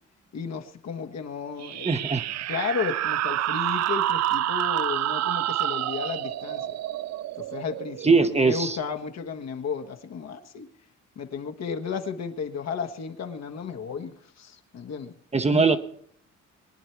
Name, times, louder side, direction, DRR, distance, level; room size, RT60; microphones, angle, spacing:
voice 1, 0.3-2.1 2.5-6.7 7.4-10.7 11.1-15.1 15.5-15.8, left 6 dB, 60° left, 1.4 m, -33 dB
sound 1, 1.6-8.8, right 13 dB, 60° right, 0.4 m, -28 dB
voice 2, 1.8-2.2 8.0-8.8 15.3-15.8, right 4 dB, 20° right, 0.9 m, -21 dB
22.0 x 9.8 x 4.6 m
cardioid pair, 90°, 30 cm